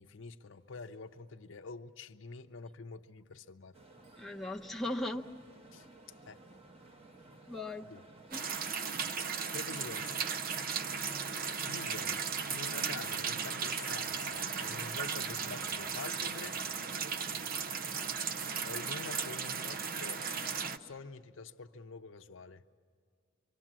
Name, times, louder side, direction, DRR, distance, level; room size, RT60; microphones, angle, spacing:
voice 1, 0.0-3.8 5.7-5.9 6.3-6.4 7.8-8.0 9.5-10.3 11.6-12.2 12.5-16.6 18.7-22.6, left 4 dB, 85° left, 8 dB, 0.7 m, -47 dB
sound 1, 0.5-12.2, right 2 dB, 70° right, 7.3 m, -65 dB
sound 2, 3.7-21.0, right 2 dB, 30° right, 1.1 m, -57 dB
voice 2, 4.2-5.3 7.5-7.8 8.3-8.9, left 1 dB, ahead, 0 dB, 0.8 m, -38 dB
sound 3, 8.3-20.8, right 6 dB, 50° right, 0.6 m, -36 dB
25.5 x 24.5 x 7.5 m, 2.1 s
head